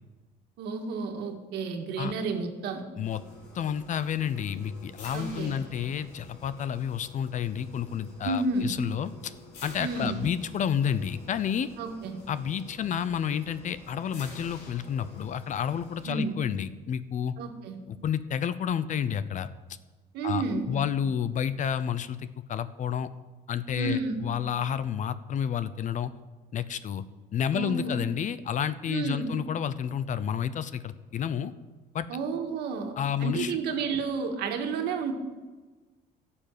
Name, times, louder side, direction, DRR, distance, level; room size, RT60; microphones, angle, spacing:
voice 1, 0.6-2.9 5.1-5.6 8.2-8.7 9.8-10.3 11.8-12.2 16.1-16.3 17.4-17.8 20.1-20.8 23.8-24.2 27.5-28.0 28.9-29.3 32.1-32.9 33.2-35.1, right 4 dB, 80° right, 4 dB, 1.8 m, -31 dB
sound 1, 3.0-16.1, left 2 dB, 90° left, 3.6 m, -49 dB
voice 2, 3.5-9.3 9.6-11.7 12.3-17.3 17.9-19.5 20.2-23.1 23.5-26.1 26.5-27.0 27.3-31.5 31.9-32.1 33.0-33.5, left 8 dB, 50° left, 14 dB, 0.7 m, -30 dB
12.0 x 7.2 x 9.1 m, 1.3 s
cardioid pair, 110°, 17 cm